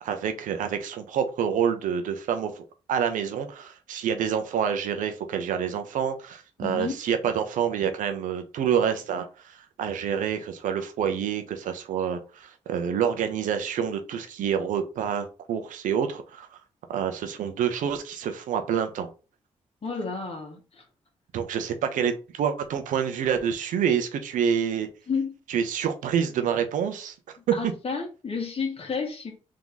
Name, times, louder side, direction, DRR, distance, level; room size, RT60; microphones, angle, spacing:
voice 1, 0.0-2.6 2.9-16.5 16.9-19.1 21.3-24.9 25.5-27.1, right 8 dB, 80° right, 0.8 m, -27 dB
voice 2, 6.6-7.0 19.8-20.8 25.1-25.3 27.5-29.3, left 5 dB, 50° left, 1.6 m, -31 dB
3.7 x 2.9 x 3.9 m
supercardioid pair, 50°, 13 cm